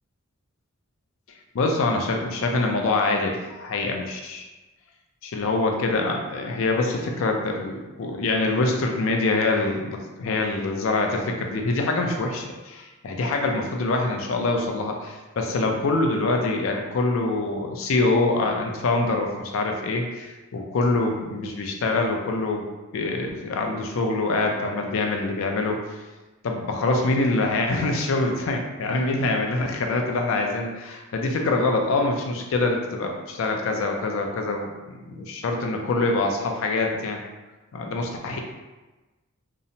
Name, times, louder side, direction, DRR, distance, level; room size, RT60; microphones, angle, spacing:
voice 1, 1.5-4.5 5.2-22.6 22.9-25.8 26.4-37.2 37.7-38.4, left 2 dB, 65° left, 2 dB, 0.4 m, -25 dB
2.8 x 2.1 x 2.6 m, 1.2 s
head